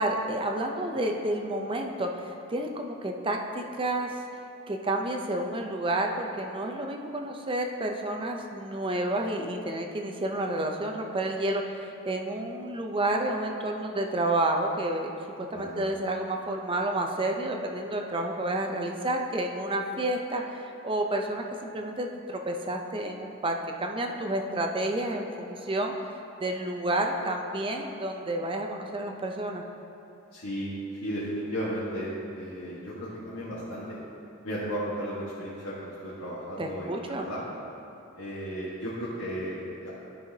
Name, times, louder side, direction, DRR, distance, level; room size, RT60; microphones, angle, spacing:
voice 1, 0.0-4.2 4.7-15.1 15.5-25.9 26.4-29.6 36.6-37.3, right 1 dB, 25° right, 3 dB, 0.5 m, -30 dB
voice 2, 15.5-15.8 30.3-30.7 31.0-34.0 34.4-37.4 38.1-39.9, equal, 85° left, -10 dB, 1.5 m, -34 dB
12.5 x 5.6 x 2.8 m, 2.8 s
head